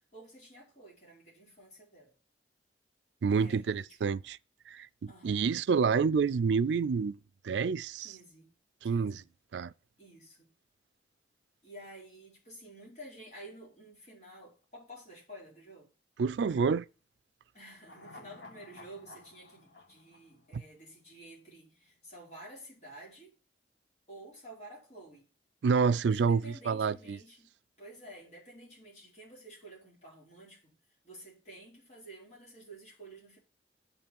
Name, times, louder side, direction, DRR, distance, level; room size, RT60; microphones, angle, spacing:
voice 1, 0.1-2.1 3.3-4.2 5.1-5.6 8.0-8.5 8.8-9.3 10.0-10.5 11.6-15.9 17.5-23.3 24.1-25.3 26.1-30.7 31.0-33.4, right 1 dB, 40° left, 4.6 m, -51 dB
voice 2, 3.2-4.4 4.7-7.2 7.4-8.1 8.8-9.2 9.5-9.7 16.2-16.8 20.5-20.6 25.6-27.2, right 5 dB, 80° right, 0.4 m, -28 dB
sound 1, 17.8-21.2 21.5-21.6, left 2 dB, 70° left, 1.5 m, -53 dB
8.2 x 5.5 x 7.0 m
head